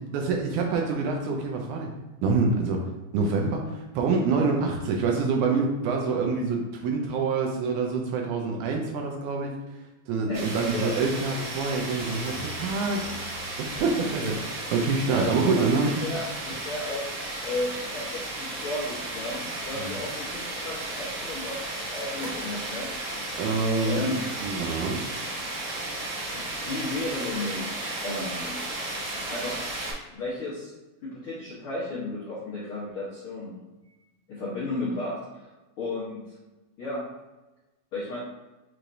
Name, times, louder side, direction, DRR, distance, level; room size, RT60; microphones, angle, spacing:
voice 1, 0.0-1.9 2.2-2.8 3.1-9.5 10.1-13.1 13.6-14.3 14.7-16.0 19.8-20.0 23.4-24.0 24.4-25.1, right 4 dB, 80° right, 1 dB, 1.9 m, -26 dB
sound 1, 10.3-29.9, right 2 dB, 55° right, 2.4 m, -34 dB
sound 2, 12.0-13.9, equal, 90° left, 2.3 m, -42 dB
voice 2, 14.0-14.4 15.1-15.7 16.0-17.0 17.4-21.7 21.9-22.9 23.8-24.2 26.3-27.8 28.0-28.6 29.3-29.6 30.1-30.7 31.0-33.5 34.3-35.5 35.8-36.2 36.8-37.0 37.9-38.2, left 2 dB, 70° left, -8 dB, 1.3 m, -33 dB
5.7 x 3.2 x 2.6 m, 1.1 s
omnidirectional pair, 3.7 m